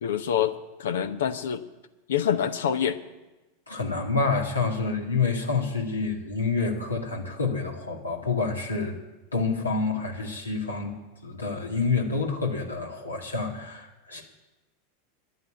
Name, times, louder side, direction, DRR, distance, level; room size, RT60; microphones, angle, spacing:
voice 1, 0.0-1.6 2.1-3.0, left 9 dB, 70° left, 10 dB, 0.7 m, -26 dB
voice 2, 3.7-9.0 9.3-10.9 11.2-14.2, left 4 dB, 85° left, 1 dB, 2.0 m, -28 dB
10.5 x 9.3 x 8.6 m, 1.1 s
figure-of-eight pair, 85°, 0 cm